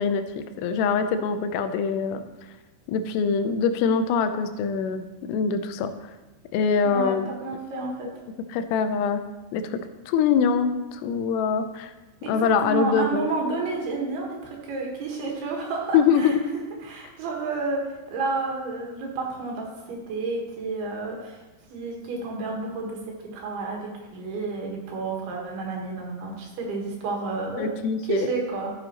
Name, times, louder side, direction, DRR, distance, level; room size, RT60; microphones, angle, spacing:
voice 1, 0.0-2.2 2.9-5.9 6.5-7.3 8.5-9.2 9.5-9.8 10.1-11.9 12.3-13.3 15.9-16.4 27.6-28.3, left 6 dB, 85° left, 9 dB, 2.7 m, -24 dB
voice 2, 6.8-8.1 12.2-16.4 16.8-21.4 21.7-23.0 23.3-27.7 28.1-28.7, right 3 dB, 75° right, -1 dB, 3.4 m, -30 dB
12.5 x 7.7 x 2.9 m, 1.1 s
omnidirectional pair, 4.7 m